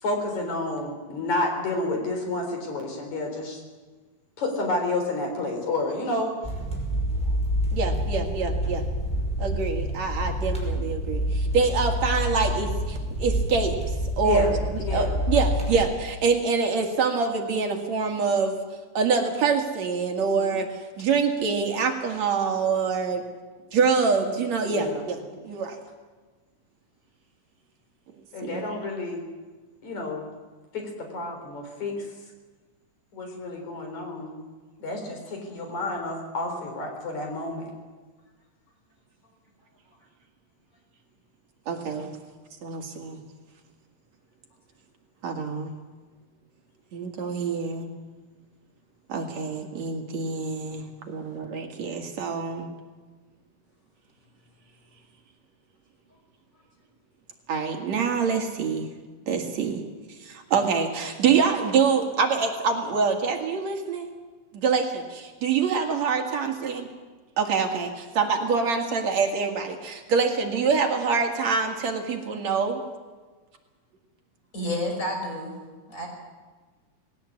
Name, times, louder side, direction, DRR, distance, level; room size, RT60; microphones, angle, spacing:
voice 1, 0.0-3.6 4.4-6.3 14.2-15.2 20.1-20.5 24.6-25.0 28.3-29.2 29.8-30.2 30.7-32.1 33.1-34.4 34.8-37.7, left 2 dB, 55° left, 3 dB, 5.1 m, -30 dB
sound 1, 6.4-15.8, equal, ahead, 5.3 m, -27 dB
voice 2, 7.7-8.8 9.4-18.5 18.9-23.2 23.7-25.8 28.4-28.7 41.7-42.1 42.6-43.2 45.2-45.7 46.9-47.9 49.1-52.7 57.5-58.9 59.2-59.8 60.1-64.1 64.5-66.8 67.4-72.8, right 5 dB, 55° right, 3 dB, 3.0 m, -25 dB
voice 3, 74.5-75.5 75.9-76.1, left 1 dB, 20° left, 1 dB, 5.4 m, -29 dB
19.5 x 17.5 x 8.5 m, 1.3 s
omnidirectional pair, 4.0 m